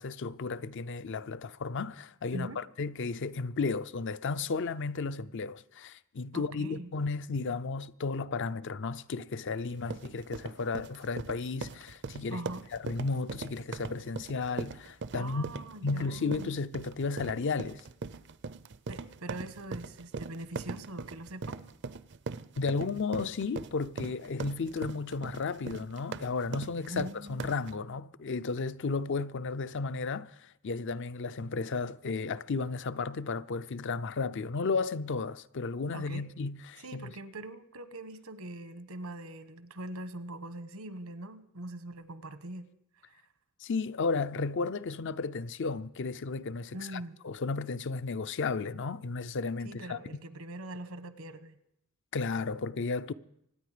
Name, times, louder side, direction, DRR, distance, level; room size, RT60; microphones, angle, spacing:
voice 1, 0.0-12.4 12.7-15.5 15.8-17.8 22.6-37.1 43.6-50.0 52.1-53.1, left 4 dB, 55° left, 0.5 m, -34 dB
voice 2, 6.3-6.9 12.3-12.6 15.2-16.5 18.9-21.6 26.9-27.6 35.9-36.3 36.8-42.7 43.1-43.2 46.7-47.2 49.6-51.6, right 1 dB, 75° right, 1.2 m, -42 dB
sound 1, 9.7-27.7, right 4 dB, 55° right, 0.5 m, -41 dB
25.5 x 9.4 x 5.0 m
head